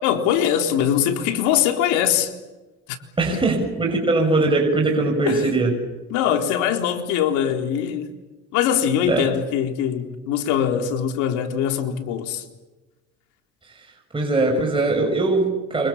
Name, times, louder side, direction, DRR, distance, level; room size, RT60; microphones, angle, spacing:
voice 1, 0.0-2.3 3.3-3.5 5.2-5.5 6.1-8.1 8.5-12.4, left 9 dB, 75° left, 4.0 m, -22 dB
voice 2, 3.2-5.7 9.1-9.3 14.1-15.9, right 2 dB, 15° right, 7.0 m, -20 dB
29.0 x 26.5 x 7.4 m
supercardioid pair, 95°, 30 cm